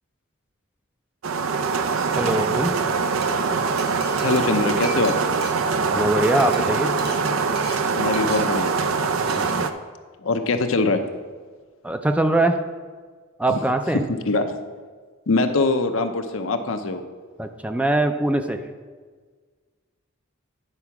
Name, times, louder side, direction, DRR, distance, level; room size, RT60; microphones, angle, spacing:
sound 1, 1.2-9.7, right 4 dB, 80° right, 0.5 m, -23 dB
voice 1, 2.2-2.7 5.9-6.9 9.4-9.7 11.8-12.6 13.4-14.0 17.4-18.6, right 1 dB, 5° right, 6 dB, 0.4 m, -22 dB
Glass, 3.0-3.3 3.8-6.1 6.3-6.6 7.0-7.2 7.6-7.8 8.1-8.4 8.8-9.0 9.3-9.5, right 4 dB, 55° right, 1.5 m, -37 dB
voice 2, 4.2-5.1 7.9-8.8 10.2-11.0 13.5-13.6 13.9-14.5 15.3-17.0, left 3 dB, 75° left, 6 dB, 0.7 m, -22 dB
9.9 x 4.6 x 5.9 m, 1.5 s
head